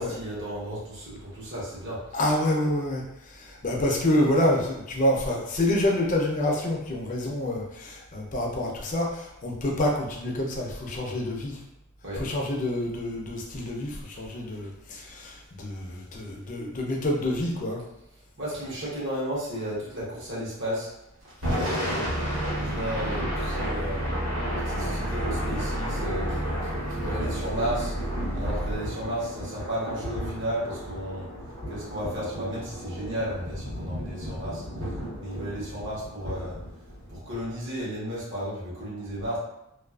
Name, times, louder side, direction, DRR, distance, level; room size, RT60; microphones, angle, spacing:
voice 1, 0.0-2.2 12.0-12.3 18.4-20.9 21.5-22.1 22.5-24.0 24.6-27.9 28.3-31.3 31.7-34.6 35.2-36.6 37.1-39.4, right 1 dB, 65° right, -7 dB, 0.9 m, -33 dB
voice 2, 2.1-11.6 12.2-17.8, left 1 dB, 40° left, -1 dB, 0.5 m, -27 dB
Thunder / Rain, 21.3-37.5, equal, 90° right, 1.1 m, -33 dB
sound 1, 22.0-28.8, right 1 dB, 45° right, 0.6 m, -32 dB
2.4 x 2.3 x 2.3 m, 0.84 s
head